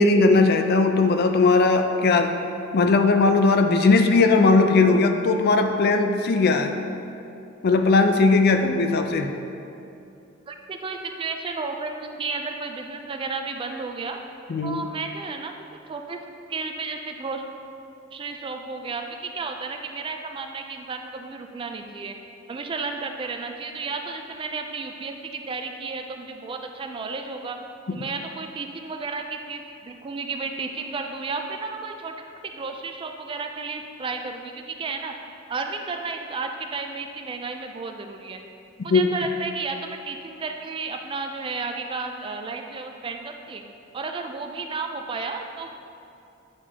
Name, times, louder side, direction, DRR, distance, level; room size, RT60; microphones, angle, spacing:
voice 1, 0.0-2.3 2.7-6.7 7.6-9.3 14.5-14.8 38.9-39.1, left 3 dB, 50° left, 6 dB, 0.4 m, -18 dB
voice 2, 10.5-14.2 14.6-15.5 15.9-16.2 16.5-17.4 18.1-22.2 22.5-27.6 27.9-32.1 32.5-35.1 35.5-38.4 38.8-43.6 43.9-45.8, right 4 dB, 25° right, 4 dB, 0.3 m, -32 dB
8.7 x 4.9 x 2.8 m, 2.7 s
head